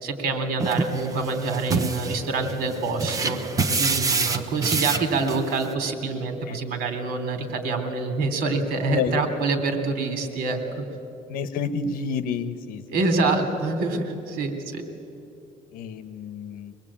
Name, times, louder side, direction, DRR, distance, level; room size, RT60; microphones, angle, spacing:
voice 1, 0.0-3.4 3.7-10.6 12.9-14.8, right 3 dB, 85° right, 6 dB, 3.3 m, -26 dB
sound 1, 0.6-5.7, right 4 dB, 25° right, 1.0 m, -27 dB
voice 2, 8.9-9.2 11.3-12.8 15.7-16.7, left 6 dB, 70° left, 12 dB, 1.2 m, -29 dB
24.5 x 20.0 x 8.7 m, 2.7 s
cardioid pair, 160°, 15 cm